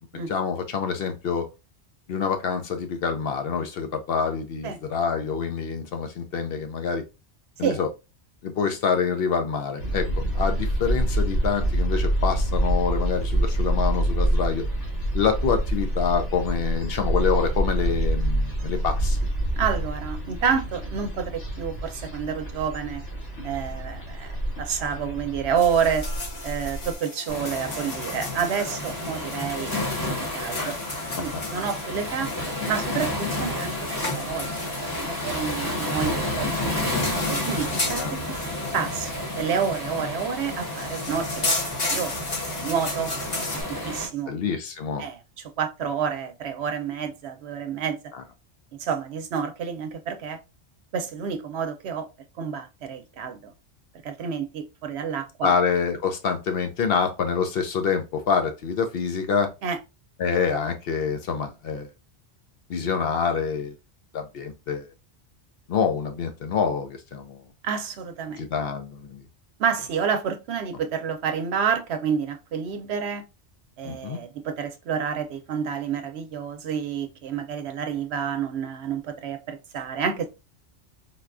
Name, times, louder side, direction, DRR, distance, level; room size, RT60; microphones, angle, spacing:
voice 1, 0.3-1.5 2.1-7.0 7.6-7.9 8.4-10.1 10.3-14.6 15.1-19.2 30.6-30.7 38.0-38.2 44.3-45.0 48.1-48.2 55.4-59.5 60.2-61.9 62.7-63.7 64.1-64.9 65.7-67.4 68.4-69.2 73.8-74.2, left 6 dB, 65° left, 0.7 m, -26 dB
sound 1, 9.8-26.9, right 1 dB, 85° left, 1.4 m, -26 dB
voice 2, 19.5-23.0 23.4-24.3 24.6-26.1 26.4-30.0 30.3-30.7 31.2-32.3 32.7-33.7 34.0-34.7 35.0-36.5 36.8-38.3 38.7-42.1 42.4-43.1 43.8-44.3 45.0-48.0 48.8-50.4 50.9-52.1 52.4-53.5 54.0-55.5 59.6-59.8 67.6-68.4 69.6-73.2 73.8-80.2, right 7 dB, 70° right, 0.8 m, -29 dB
sound 2, 25.6-43.6, left 2 dB, 40° left, 0.8 m, -34 dB
Waves surf, 27.3-44.1, left 1 dB, 15° left, 1.0 m, -31 dB
4.0 x 2.3 x 2.4 m
omnidirectional pair, 1.2 m